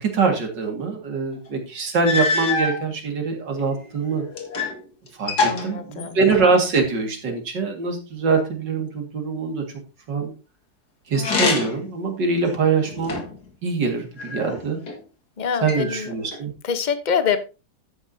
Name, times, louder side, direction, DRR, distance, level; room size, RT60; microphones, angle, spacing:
voice 1, 0.0-4.2 5.2-9.6 10.1-10.3 11.1-13.3 13.6-14.8 15.6-16.5, right 4 dB, 85° right, 3 dB, 2.8 m, -23 dB
sound 1, 1.5-1.6 2.0-2.8 3.6-4.8 5.1-6.6 11.1-11.9 12.4-13.4 14.2-15.0 15.7-16.4, left 3 dB, 65° left, 2.5 m, -26 dB
voice 2, 5.4-6.2 15.4-16.1 16.6-17.4, left 7 dB, 35° left, 10 dB, 0.9 m, -25 dB
12.0 x 9.3 x 2.7 m, 0.31 s
omnidirectional pair, 1.9 m